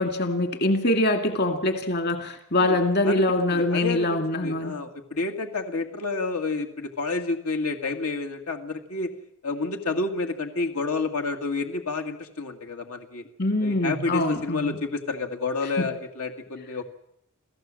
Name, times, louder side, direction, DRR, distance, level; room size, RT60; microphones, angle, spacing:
voice 1, 0.0-4.8 13.4-14.8 15.8-15.9, left 1 dB, 50° left, 5 dB, 2.2 m, -24 dB
voice 2, 3.0-9.1 9.4-13.2 13.6-16.8, left 3 dB, 90° left, 4 dB, 2.1 m, -30 dB
28.5 x 15.5 x 7.6 m, 0.77 s
head